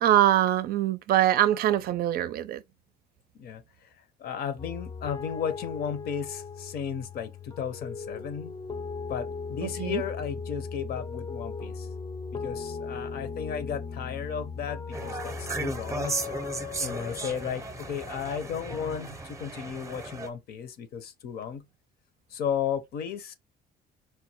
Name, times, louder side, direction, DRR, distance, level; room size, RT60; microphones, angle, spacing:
voice 1, 0.0-2.6 9.8-10.0, right 12 dB, 65° right, 0.4 m, -23 dB
voice 2, 3.3-3.9 4.2-8.5 9.1-11.9 12.3-16.2 16.8-21.6 22.3-23.3, left 8 dB, 65° left, 0.8 m, -34 dB
sound 1, 4.6-19.0, left 5 dB, 25° left, 0.5 m, -38 dB
sound 2, 14.9-20.3, right 3 dB, 15° right, 0.7 m, -36 dB
4.4 x 2.2 x 2.9 m
cardioid pair, 110°, 17 cm